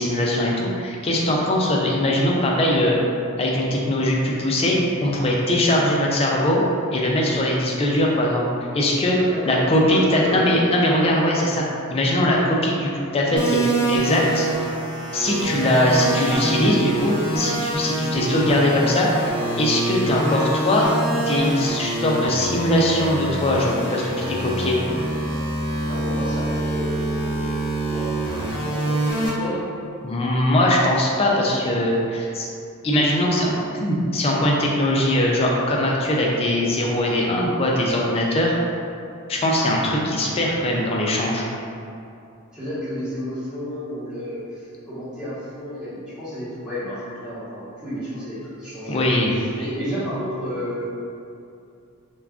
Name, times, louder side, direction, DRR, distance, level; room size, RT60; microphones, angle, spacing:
voice 1, 0.0-3.0 3.4-6.6 6.9-8.4 8.7-9.2 9.5-11.6 11.9-14.5 15.1-20.9 21.3-24.8 30.0-32.5 32.8-33.5 33.8-38.6 39.3-41.4 48.9-49.3, left 1 dB, 25° left, -3 dB, 0.4 m, -21 dB
voice 2, 9.3-10.5 25.9-27.5 27.9-28.1 28.6-29.7 42.5-50.8, equal, 5° right, -13 dB, 0.9 m, -31 dB
sound 1, 13.4-29.3, right 2 dB, 25° right, 0.6 m, -25 dB
2.4 x 2.2 x 3.4 m, 2.5 s
head